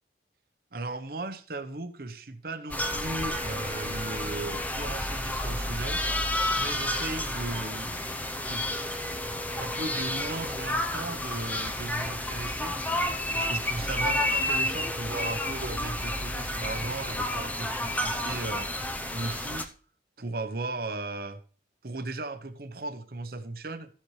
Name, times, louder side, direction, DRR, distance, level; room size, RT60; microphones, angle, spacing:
voice 1, 0.7-6.0 6.6-8.2 8.5-8.6 9.3-12.8 13.3-18.7 19.1-19.7 20.2-21.4 21.8-23.9, right 2 dB, 55° right, 0.9 m, -36 dB
sound 1, 2.7-19.7, left 1 dB, 10° left, 0.6 m, -31 dB
sound 2, 2.8-4.7 8.7-10.7 14.7-15.5, left 1 dB, 20° right, 0.9 m, -42 dB
14.0 x 7.4 x 3.2 m
head